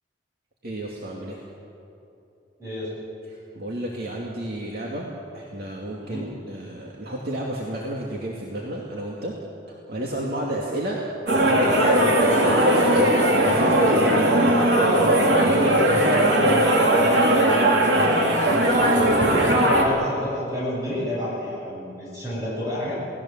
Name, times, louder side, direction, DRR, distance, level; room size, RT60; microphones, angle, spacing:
voice 1, 0.6-1.4 3.3-9.3 9.7-11.0 11.3-14.3 14.7-16.3 17.9-18.3 18.6-19.7, right 1 dB, 60° right, -3 dB, 2.5 m, -32 dB
sound 1, 11.3-19.8, right 1 dB, 90° right, 3.4 m, -18 dB
voice 2, 19.6-22.9, left 1 dB, 20° right, -7 dB, 7.4 m, -30 dB
28.5 x 19.0 x 7.4 m, 2.8 s
head